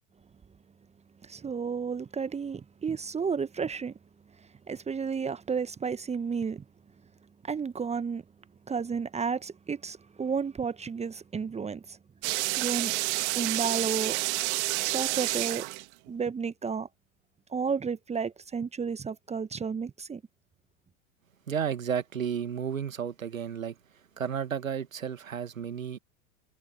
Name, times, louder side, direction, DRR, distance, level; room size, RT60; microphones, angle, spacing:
voice 1, 1.3-3.9 4.7-6.6 7.5-8.2 8.7-12.0 12.6-12.9 13.3-14.2 14.8-15.7 16.1-16.9 17.5-20.2, right 6 dB, 15° right, 1.3 m, -32 dB
sound 1, 12.2-16.1, right 22 dB, 55° right, 2.3 m, -29 dB
voice 2, 21.5-23.7 24.2-26.0, right 7 dB, 75° right, 2.1 m, -32 dB
figure-of-eight pair, 80°, 41 cm